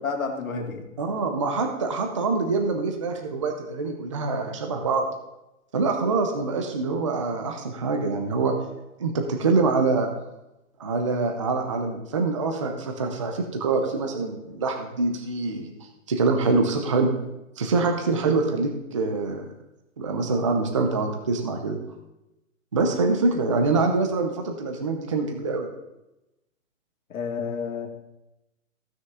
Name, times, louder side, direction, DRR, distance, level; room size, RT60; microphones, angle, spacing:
voice 1, 0.0-0.9 27.1-27.9, left 5 dB, 80° left, 2 dB, 2.2 m, -30 dB
voice 2, 1.0-5.1 5.7-8.5 9.0-10.1 10.8-15.7 16.1-17.1 17.6-19.5 20.0-21.8 22.7-25.7, right 3 dB, 25° right, 4 dB, 0.5 m, -25 dB
15.0 x 6.5 x 3.6 m, 0.94 s
hypercardioid pair, 170°, 41 cm